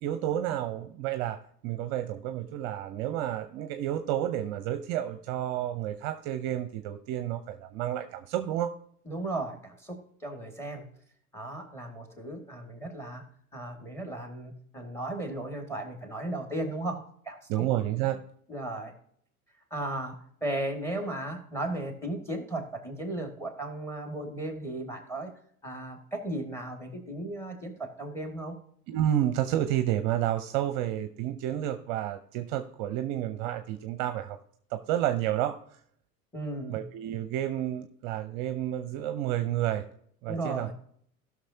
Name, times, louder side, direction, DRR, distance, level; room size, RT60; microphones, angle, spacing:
voice 1, 0.0-8.7 17.5-18.2 28.9-34.4 34.7-35.6 36.7-39.9 40.2-40.7, right 12 dB, 40° right, 9 dB, 0.7 m, -30 dB
voice 2, 9.1-10.8 11.3-13.2 13.5-17.0 17.2-17.7 18.5-18.9 19.7-25.3 25.6-28.6 36.3-36.8 40.3-40.7, right 1 dB, 5° left, 4 dB, 2.1 m, -35 dB
17.5 x 6.2 x 2.8 m, 0.65 s
figure-of-eight pair, 85°, 44 cm